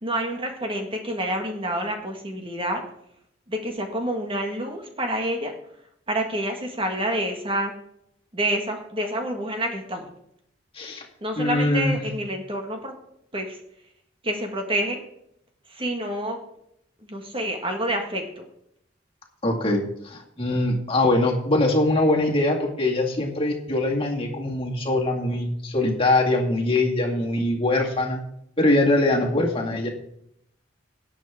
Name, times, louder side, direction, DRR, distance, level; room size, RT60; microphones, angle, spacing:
voice 1, 0.0-2.8 3.5-5.5 6.1-7.7 8.3-10.0 11.2-12.9 13.3-13.6 14.2-15.0 15.7-16.4 17.1-18.4, right 1 dB, 30° right, 2 dB, 1.7 m, -28 dB
voice 2, 10.7-11.1 11.4-11.9 19.4-28.2 28.6-29.9, left 2 dB, 30° left, 0 dB, 2.2 m, -22 dB
18.0 x 7.4 x 3.7 m, 0.74 s
head